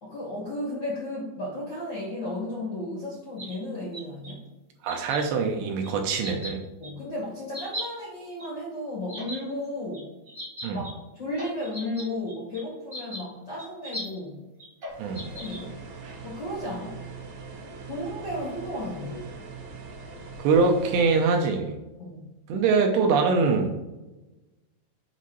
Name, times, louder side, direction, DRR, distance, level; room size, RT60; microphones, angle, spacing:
voice 1, 0.0-4.4 6.8-10.1 10.7-10.9 11.1-14.4 15.3-15.7 16.2-17.0 17.9-19.1 22.0-22.2, left 1 dB, 80° left, -5 dB, 1.0 m, -34 dB
sound 1, 3.4-4.3 4.9-5.2 5.8-5.9 6.1-6.5 6.8-6.9 7.5-7.8 8.4-8.5 9.1-9.4 9.9-10.0 10.3-10.9 11.2-12.6 12.9-13.2 13.6-14.1 14.6-15.6, equal, 35° right, 1.1 m, -37 dB
voice 2, 4.8-6.6 10.6-10.8 15.0-15.3 20.4-21.7 22.5-23.7, right 4 dB, 80° right, 3 dB, 2.7 m, -23 dB
sound 2, 14.9-21.4, right 4 dB, 65° right, 2.8 m, -41 dB
7.3 x 4.2 x 4.8 m, 1.1 s
omnidirectional pair, 5.4 m